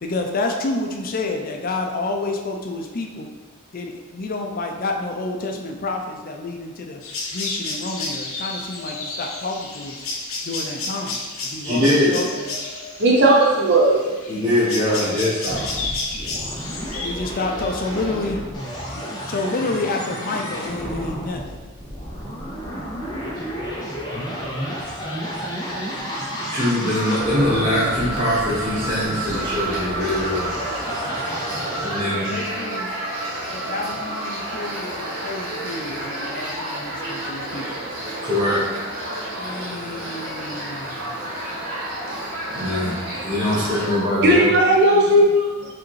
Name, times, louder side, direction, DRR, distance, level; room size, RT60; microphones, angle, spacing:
voice 1, 0.0-3.3 3.7-7.0 7.3-10.0 10.4-12.5 16.9-18.4 18.9-21.6 32.1-32.9 33.5-37.6 39.3-41.3 42.5-43.0, left 2 dB, 40° left, 2 dB, 0.5 m, -29 dB
sound 1, 7.0-17.1, left 3 dB, 75° left, 0.8 m, -31 dB
voice 2, 11.6-12.2 14.3-15.6 26.5-30.5 31.8-32.4 38.2-38.6 42.5-42.9 43.2-44.5 44.9-45.0 45.4-45.5, left 1 dB, 25° right, -15 dB, 1.4 m, -22 dB
voice 3, 13.0-14.0 44.2-45.4 45.6-45.7, right 1 dB, 50° right, -2 dB, 0.7 m, -15 dB
sound 2, 15.5-32.0, equal, 20° left, 0.8 m, -31 dB
sound 3, 26.9-44.0, right 1 dB, 75° right, 1.2 m, -30 dB
4.8 x 3.5 x 3.2 m, 1.4 s
head